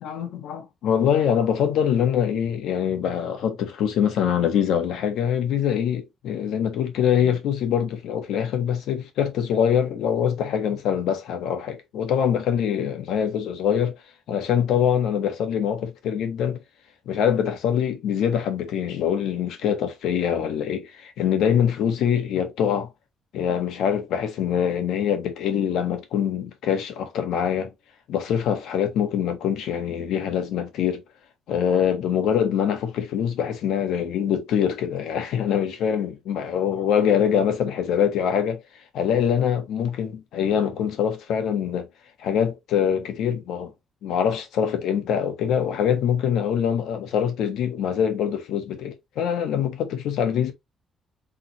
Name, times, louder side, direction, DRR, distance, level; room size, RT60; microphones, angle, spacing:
voice 1, 0.0-14.0 14.3-16.6 17.1-22.9 23.3-27.7 28.1-31.0 31.5-38.6 38.9-41.9 42.2-43.7 44.0-50.5, left 8 dB, 90° left, 1.4 m, -24 dB
4.3 x 3.8 x 3.1 m
cardioid pair, 125°, 0 cm